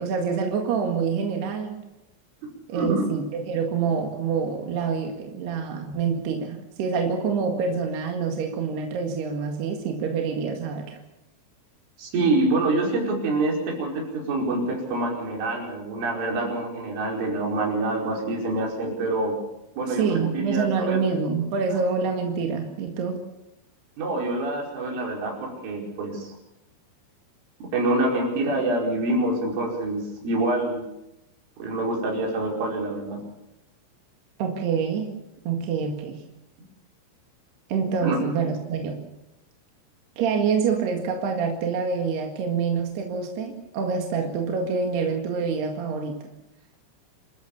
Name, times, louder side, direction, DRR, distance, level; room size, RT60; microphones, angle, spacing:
voice 1, 0.0-1.8 2.7-11.0 19.9-23.2 34.4-35.1 35.5-36.2 37.7-39.1 40.2-46.2, right 5 dB, 60° right, 3 dB, 3.8 m, -26 dB
voice 2, 2.7-3.0 12.0-19.3 19.8-21.0 24.0-26.3 27.6-30.8 31.6-33.2 38.0-38.2, right 2 dB, 80° right, 0 dB, 7.6 m, -26 dB
28.0 x 14.0 x 7.3 m, 0.90 s
omnidirectional pair, 5.6 m